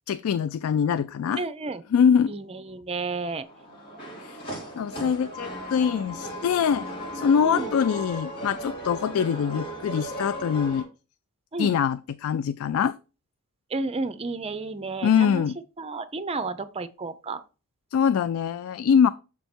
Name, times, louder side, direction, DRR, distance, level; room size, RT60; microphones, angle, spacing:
voice 1, 0.1-1.4 1.9-2.3 4.2-4.4 4.8-6.9 7.1-10.9 11.6-13.0 15.0-15.6 17.9-19.1, left 7 dB, 75° left, 0.3 m, -23 dB
voice 2, 1.4-1.8 2.3-3.5 7.4-7.7 11.5-11.7 13.7-15.4 15.8-17.4, right 3 dB, 30° right, 0.5 m, -32 dB
sound 1, 3.4-10.8, equal, 55° left, 4.5 m, -36 dB
7.2 x 4.5 x 4.3 m
head